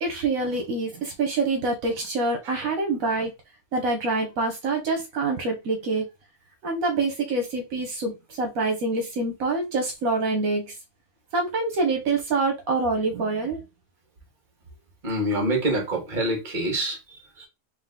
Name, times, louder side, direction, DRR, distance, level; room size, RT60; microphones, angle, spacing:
voice 1, 0.0-3.3 3.7-6.1 6.6-10.6 11.3-13.6, right 3 dB, 75° right, 1.3 m, -26 dB
voice 2, 15.0-17.5, right 1 dB, 35° right, 1.5 m, -27 dB
3.7 x 2.7 x 3.6 m
omnidirectional pair, 1.5 m